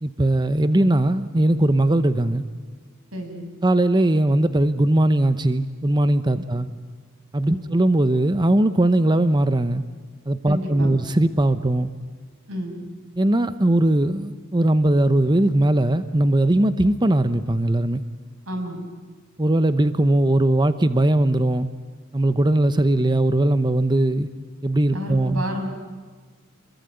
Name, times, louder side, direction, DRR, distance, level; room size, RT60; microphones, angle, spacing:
voice 1, 0.0-2.4 3.6-6.7 7.3-9.8 10.3-11.9 13.2-18.0 19.4-21.7 22.1-24.3 24.6-25.4, right 1 dB, 20° right, 11 dB, 0.9 m, -19 dB
voice 2, 3.1-3.5 6.3-6.5 7.5-7.6 10.5-11.0 12.5-12.8 18.5-18.8 24.9-25.7, equal, 85° right, 4 dB, 6.9 m, -30 dB
27.0 x 22.0 x 9.5 m, 1.5 s
head